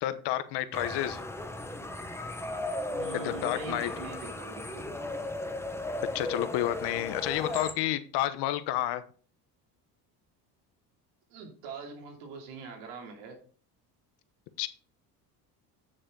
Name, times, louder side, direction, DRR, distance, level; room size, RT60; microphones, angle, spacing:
voice 1, 0.0-1.2 3.1-4.0 6.0-9.0 14.6-14.7, left 13 dB, 70° left, 12 dB, 1.0 m, -30 dB
sound 1, 0.7-7.7, left 2 dB, 5° left, 1.1 m, -36 dB
voice 2, 2.9-4.9 11.3-13.4, right 5 dB, 85° right, 3 dB, 2.9 m, -43 dB
8.9 x 6.5 x 3.8 m, 0.41 s
supercardioid pair, 95°, 42 cm